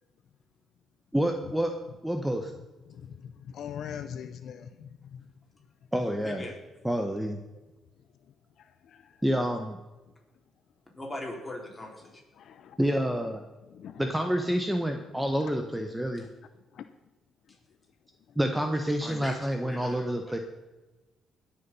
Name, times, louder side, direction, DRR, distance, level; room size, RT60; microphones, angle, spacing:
voice 1, 1.1-1.7 2.0-2.5 5.9-6.4 6.8-7.4 9.2-9.8 12.8-13.4 14.0-16.2 18.4-20.4, equal, 5° right, 5 dB, 1.1 m, -28 dB
voice 2, 3.5-4.7 12.5-12.6 12.8-12.9 13.7-14.3, left 8 dB, 70° left, 10 dB, 0.7 m, -40 dB
voice 3, 6.2-6.6 11.0-12.2 16.2-16.3 17.5-17.6 19.0-20.4, left 1 dB, 15° left, -1 dB, 4.1 m, -40 dB
20.0 x 7.0 x 5.5 m, 1.1 s
cardioid pair, 90°, 0 cm